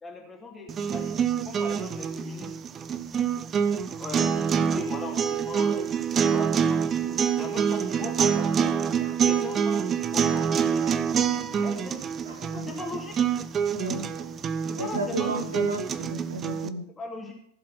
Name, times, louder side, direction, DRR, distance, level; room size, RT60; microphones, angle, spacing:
voice 1, 0.0-1.2 1.4-2.5 3.7-5.9 6.1-8.7 9.3-13.2 14.6-15.6 17.0-17.3, left 3 dB, 15° left, 0 dB, 2.9 m, -39 dB
sound 1, 0.7-16.7, right 7 dB, 25° right, 0.7 m, -26 dB
Bark, 7.9-9.3 10.3-10.5 10.8-11.1 11.5-11.8 12.2-12.5, right 7 dB, 55° right, 1.6 m, -48 dB
voice 2, 13.8-14.1 14.8-16.9, right 2 dB, 75° right, 7 dB, 1.6 m, -33 dB
16.0 x 7.5 x 5.8 m, 0.67 s
figure-of-eight pair, 90°, 0 cm